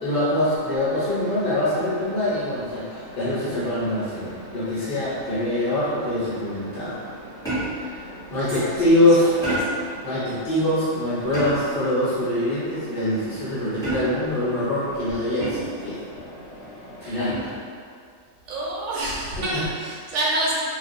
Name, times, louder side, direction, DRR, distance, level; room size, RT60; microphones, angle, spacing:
voice 1, 0.0-7.0 7.8-8.0 8.3-9.3 10.0-16.0 17.0-17.4 19.5-19.6, left 1 dB, 50° left, -11 dB, 0.9 m, -24 dB
Mechanisms, 0.6-17.3, equal, 70° left, 1.2 m, -43 dB
sound 1, 7.4-8.0 9.4-9.9 11.3-11.8 13.8-14.4 15.4-15.9 17.3-17.7, right 1 dB, 5° left, 0.7 m, -28 dB
voice 2, 8.4-8.8 9.2-9.5 17.0-17.4 18.5-20.5, right 1 dB, 70° right, -5 dB, 0.9 m, -28 dB
2.4 x 2.3 x 2.6 m, 2.2 s
omnidirectional pair, 1.4 m